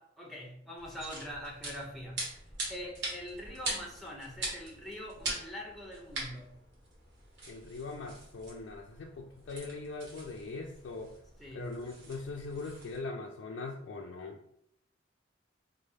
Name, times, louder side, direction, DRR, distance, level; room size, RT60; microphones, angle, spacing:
voice 1, 0.0-2.3 2.7-6.6 11.4-11.7, equal, ahead, -2 dB, 0.7 m, -43 dB
sound 1, 0.8-13.0, right 2 dB, 65° right, 1.2 m, -43 dB
voice 2, 7.5-11.1 11.5-14.4, left 3 dB, 70° left, 0 dB, 0.4 m, -41 dB
4.1 x 2.1 x 3.3 m, 0.71 s
head